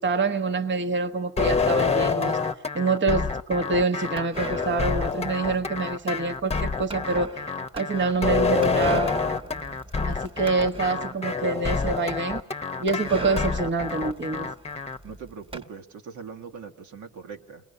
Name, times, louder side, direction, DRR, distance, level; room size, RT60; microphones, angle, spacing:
voice 1, 0.0-2.4 2.7-7.3 7.7-9.2 10.1-12.4 12.8-14.5, right 3 dB, 40° right, 7 dB, 1.2 m, -26 dB
sound 1, 1.4-15.0, left 5 dB, 20° left, 1.0 m, -27 dB
sound 2, 4.2-11.4 11.8-11.9 12.1-12.2 12.9-15.6, right 3 dB, 20° right, 1.4 m, -38 dB
voice 2, 15.0-17.6, right 6 dB, 75° right, 4 dB, 1.8 m, -41 dB
29.5 x 21.0 x 6.8 m, 0.66 s
cardioid pair, 90°, 30 cm